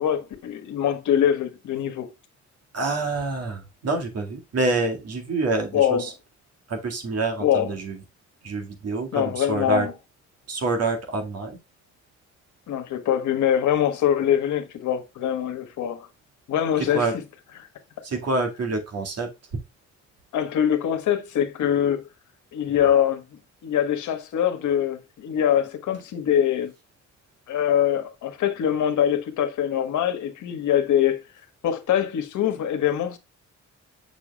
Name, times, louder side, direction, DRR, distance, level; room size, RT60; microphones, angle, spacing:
voice 1, 0.0-2.1 5.7-6.1 7.4-7.7 9.1-9.9 12.7-16.1 16.5-17.1 20.3-22.0 22.5-23.2 23.6-26.7 27.5-31.2 31.6-33.2, left 10 dB, 75° left, 1.5 m, -23 dB
voice 2, 2.7-6.1 6.7-8.0 8.4-9.9 10.5-11.6 16.8-17.1 18.0-19.3, right 3 dB, 55° right, 2.2 m, -27 dB
7.0 x 6.1 x 2.4 m
cardioid pair, 90°, 30 cm